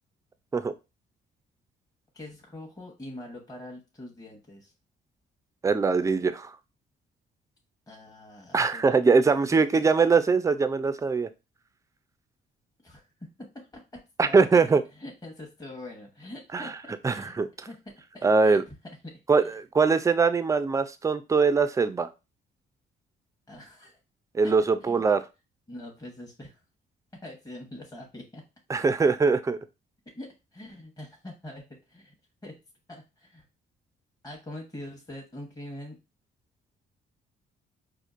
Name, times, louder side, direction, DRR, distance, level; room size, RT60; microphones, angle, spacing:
voice 1, 2.1-4.7 7.9-9.9 12.8-13.1 13.4-17.3 17.7-18.6 19.0-19.5 23.5-24.0 24.4-24.5 24.8-25.1 25.7-26.6 27.2-28.4 30.1-32.1 32.4-32.6 32.9-33.4 34.2-36.0, left 1 dB, 20° left, 0 dB, 0.9 m, -44 dB
voice 2, 5.6-6.5 8.5-11.3 14.2-14.8 16.5-16.7 17.0-17.5 18.2-18.6 19.3-22.1 24.3-25.2 28.7-29.6, right 4 dB, 15° right, 12 dB, 0.3 m, -22 dB
4.4 x 2.5 x 2.4 m, 0.27 s
cardioid pair, 90°, 20 cm